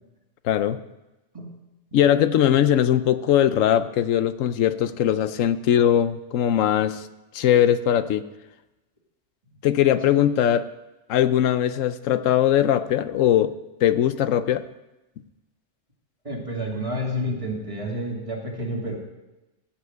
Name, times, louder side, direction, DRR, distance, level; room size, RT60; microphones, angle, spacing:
voice 1, 0.4-0.8 1.9-7.0 7.3-8.2 9.6-10.7 11.1-13.5 13.8-14.6, left 10 dB, 85° left, 12 dB, 1.0 m, -20 dB
voice 2, 16.2-19.0, equal, 25° right, -2 dB, 2.6 m, -29 dB
15.0 x 5.9 x 7.7 m, 1.0 s
omnidirectional pair, 1.3 m